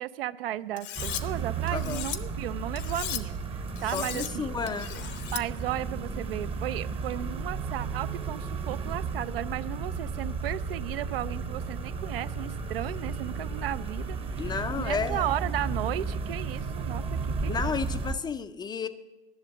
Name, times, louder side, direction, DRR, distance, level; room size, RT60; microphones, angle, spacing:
voice 1, 0.0-3.4 3.8-4.5 5.3-17.0 17.4-17.7, right 13 dB, 70° right, 15 dB, 0.5 m, -34 dB
Cutlery silverware, 0.8-1.2 1.7-2.2 2.8-3.2 3.8-4.3 4.7-5.4, left 12 dB, 35° left, 0.8 m, -36 dB
sound 1, 1.0-18.1, right 4 dB, 20° right, 0.8 m, -34 dB
voice 2, 1.7-2.1 3.9-4.9 14.4-15.3 17.4-18.9, left 5 dB, 15° left, 11 dB, 0.4 m, -32 dB
11.0 x 6.9 x 7.9 m, 1.1 s
hypercardioid pair, 105°, 31 cm